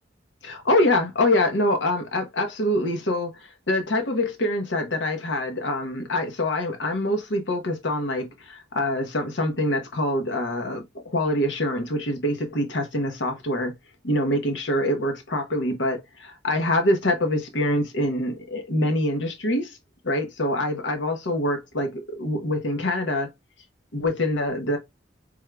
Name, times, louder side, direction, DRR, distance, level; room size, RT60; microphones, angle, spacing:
voice 1, 0.4-13.7 14.0-19.8 20.0-23.3 23.9-24.8, left 1 dB, 75° left, 0.9 m, -25 dB
4.7 x 3.6 x 2.2 m
head